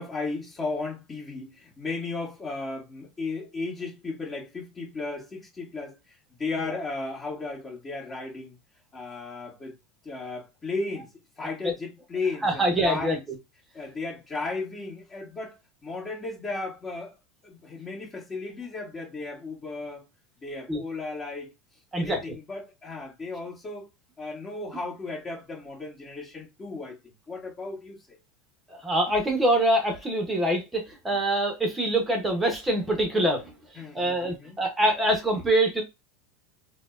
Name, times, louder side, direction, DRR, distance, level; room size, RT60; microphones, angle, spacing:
voice 1, 0.0-6.0 6.3-8.6 8.9-9.8 10.0-13.2 13.7-17.1 17.4-20.1 20.4-21.5 21.9-23.9 24.2-27.0 27.3-28.2 33.7-34.6, left 3 dB, 20° left, 1.8 m, -35 dB
voice 2, 12.4-13.2 20.7-20.8 21.9-22.2 28.7-33.5 33.9-35.8, right 1 dB, 10° right, 1.0 m, -24 dB
4.1 x 2.2 x 2.5 m
supercardioid pair, 140°, 0 cm